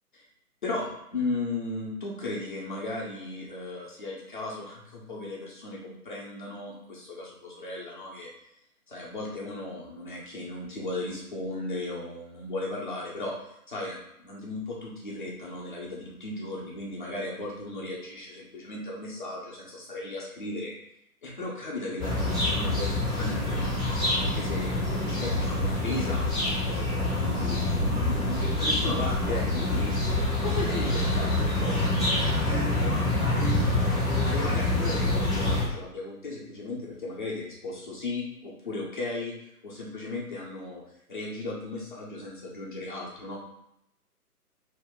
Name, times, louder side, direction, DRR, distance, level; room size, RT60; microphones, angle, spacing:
voice 1, 0.6-8.3 8.9-13.3 13.7-20.7 21.2-23.8 24.1-26.3 26.6-29.9 30.4-33.9 34.2-39.3 39.6-40.8 41.1-43.4, left 2 dB, 30° left, -4 dB, 0.8 m, -36 dB
sound 1, 22.0-35.6, left 2 dB, ahead, 0.4 m, -26 dB
2.8 x 2.5 x 3.6 m, 0.79 s
figure-of-eight pair, 140°, 47 cm